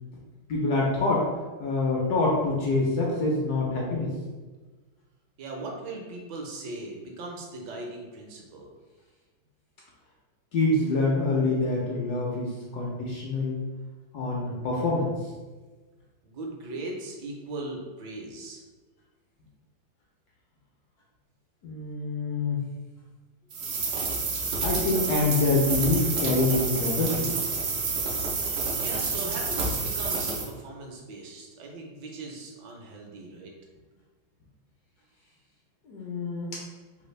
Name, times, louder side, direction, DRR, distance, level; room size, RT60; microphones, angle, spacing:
voice 1, 0.5-1.3 1.6-4.1 10.5-13.6 14.1-15.1 21.6-22.6 24.6-27.3 35.9-36.5, left 2 dB, 70° left, -3 dB, 0.9 m, -26 dB
voice 2, 5.4-8.7 16.2-18.6 28.8-33.5, right 2 dB, 75° right, 0 dB, 1.2 m, -39 dB
sound 1, 23.5-30.5, right 4 dB, 90° right, 0.6 m, -29 dB
3.4 x 2.4 x 3.1 m, 1.3 s
omnidirectional pair, 2.1 m